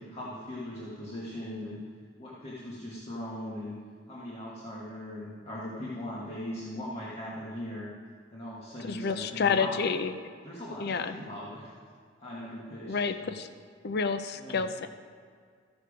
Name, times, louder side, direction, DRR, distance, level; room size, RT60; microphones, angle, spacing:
voice 1, 0.0-1.8 2.2-3.8 4.1-7.9 8.3-9.8 10.4-11.7 12.2-13.3 14.3-14.6, left 1 dB, 30° left, -7 dB, 1.6 m, -39 dB
voice 2, 8.8-10.1 10.8-11.1 12.9-13.5 13.8-14.9, left 5 dB, 55° left, 10 dB, 0.5 m, -29 dB
14.5 x 6.7 x 5.0 m, 2.1 s
head